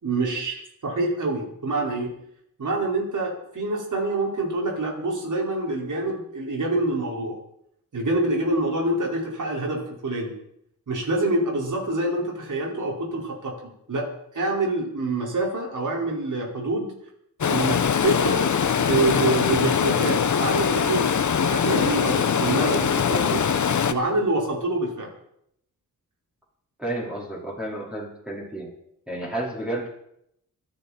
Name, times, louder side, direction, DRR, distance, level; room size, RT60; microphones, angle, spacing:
voice 1, 0.0-2.1 2.6-7.4 7.9-10.3 10.9-13.5 13.9-14.1 14.3-16.9 17.5-21.1 21.4-23.4 23.9-25.1, right 2 dB, 60° right, -1 dB, 5.3 m, -26 dB
Stream, 17.4-23.9, left 7 dB, 60° left, 1.1 m, -22 dB
voice 2, 26.8-28.7 29.1-29.9, right 1 dB, 5° right, -5 dB, 4.6 m, -31 dB
27.0 x 10.5 x 4.5 m, 0.75 s
cardioid pair, 85°, 34 cm